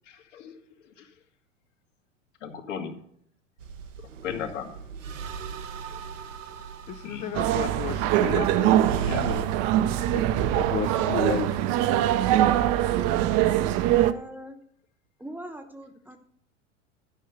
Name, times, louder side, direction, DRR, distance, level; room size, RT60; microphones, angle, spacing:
voice 1, 0.1-0.6 1.0-1.1 2.4-3.0 4.2-4.7 7.0-7.3 8.2-8.5 8.9-9.2, left 7 dB, 70° left, 3 dB, 1.9 m, -36 dB
sound 1, 3.6-9.4, right 6 dB, 75° right, 0.9 m, -38 dB
voice 2, 6.9-9.5 10.1-10.2 10.5-11.6, left 8 dB, 20° left, 9 dB, 0.4 m, -33 dB
sound 2, 7.3-14.1, right 12 dB, 40° right, 0.7 m, -23 dB
voice 3, 13.9-14.6 15.2-16.2, right 1 dB, 5° right, 7 dB, 1.0 m, -41 dB
12.0 x 5.5 x 6.8 m, 0.66 s
figure-of-eight pair, 90°, 38 cm